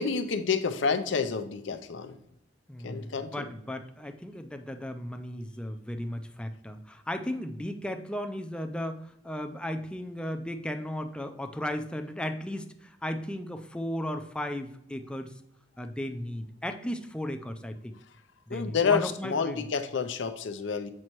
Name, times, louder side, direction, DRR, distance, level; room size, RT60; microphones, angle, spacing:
voice 1, 0.0-2.2 2.8-3.4 18.5-20.9, left 5 dB, 80° left, 8 dB, 0.6 m, -29 dB
voice 2, 2.7-15.3 15.8-18.0 18.5-19.6, left 1 dB, 5° left, 7 dB, 0.5 m, -35 dB
7.5 x 5.4 x 3.0 m, 0.78 s
head